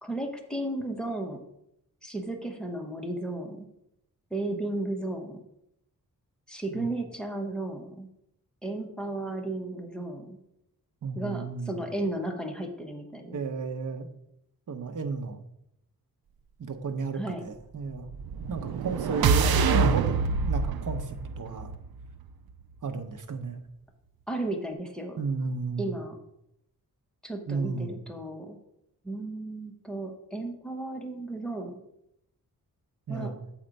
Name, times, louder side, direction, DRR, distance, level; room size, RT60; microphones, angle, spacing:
voice 1, 0.0-1.4 2.0-3.7 4.3-5.4 6.5-8.1 8.6-10.4 11.1-13.4 17.1-17.4 24.3-25.2 25.8-26.1 27.2-28.6 29.0-31.8 33.1-33.3, right 2 dB, ahead, 3 dB, 1.0 m, -34 dB
voice 2, 11.0-11.8 13.3-14.1 14.7-15.4 16.6-18.1 18.5-21.7 22.8-23.6 25.2-26.0 27.5-28.0 33.1-33.5, right 4 dB, 60° right, 7 dB, 0.8 m, -33 dB
sound 1, 18.1-22.3, right 5 dB, 85° right, 0.5 m, -26 dB
7.3 x 4.4 x 5.2 m, 0.80 s
wide cardioid pair, 110°, 36 cm